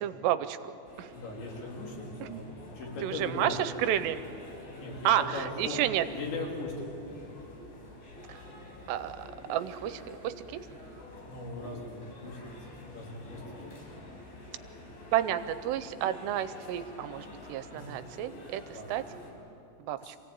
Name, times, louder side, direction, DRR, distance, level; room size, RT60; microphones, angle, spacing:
voice 1, 0.0-1.1 2.3-2.4 3.0-4.3 5.1-6.0 8.3-8.4 8.9-10.6 15.1-18.6 18.9-19.0 19.8-20.2, right 11 dB, 80° right, 12 dB, 2.7 m, -31 dB
sound 1, 0.9-19.3, left 1 dB, 60° left, 5.9 m, -48 dB
voice 2, 1.1-3.6 4.8-5.8 6.1-7.1 11.2-13.6 17.7-18.0 18.7-18.9 20.0-20.2, left 2 dB, 90° left, -1 dB, 5.6 m, -39 dB
26.0 x 17.5 x 8.8 m, 2.8 s
omnidirectional pair, 5.0 m